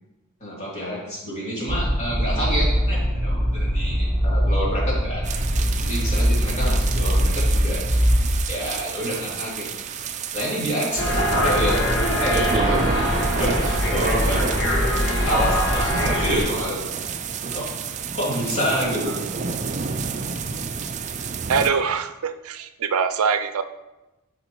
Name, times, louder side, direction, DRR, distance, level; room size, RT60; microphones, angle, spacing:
voice 1, 0.4-5.2 5.8-7.8 8.5-9.7 10.3-12.8 13.4-14.5 15.2-16.8 17.5-17.7 18.1-19.1, equal, 35° left, -6 dB, 3.0 m, -27 dB
sound 1, 1.7-8.3, equal, 10° left, 1.1 m, -22 dB
sound 2, 5.2-21.7, right 5 dB, 35° right, 0.4 m, -30 dB
sound 3, 11.0-16.4, equal, 55° left, 1.7 m, -22 dB
voice 2, 21.5-23.6, right 6 dB, 90° right, 10 dB, 0.5 m, -23 dB
12.0 x 5.1 x 3.1 m, 1.0 s
head